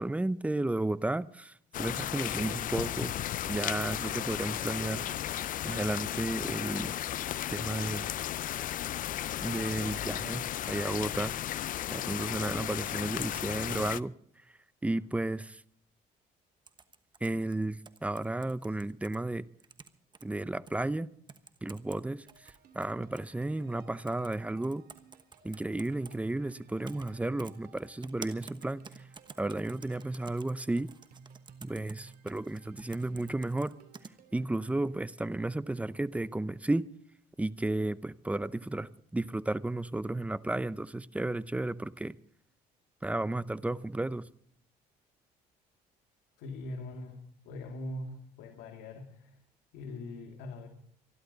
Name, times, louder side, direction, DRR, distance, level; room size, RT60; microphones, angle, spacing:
voice 1, 0.0-3.2 3.5-5.1 5.3-6.9 7.5-8.1 9.4-11.3 11.9-14.1 14.8-15.6 17.2-19.5 20.2-21.1 21.6-24.8 25.4-29.0 29.4-30.9 31.6-33.7 34.3-36.9 37.4-42.2 43.0-44.3, right 2 dB, 10° right, 0.6 m, -33 dB
sound 1, 1.7-14.0, left 12 dB, 55° left, 0.5 m, -35 dB
sound 2, 16.7-19.2 19.6-20.3 20.7-20.8 21.3-22.0 22.3-23.3 24.1-24.4 24.6-26.2 26.9-27.1 27.4-34.1, right 5 dB, 25° right, 1.2 m, -50 dB
sound 3, 22.3-34.6, right 6 dB, 60° right, 2.7 m, -58 dB
voice 2, 46.4-49.3 49.7-50.7, left 2 dB, 90° left, 2.4 m, -42 dB
26.0 x 11.5 x 4.0 m
cardioid pair, 110°, 17 cm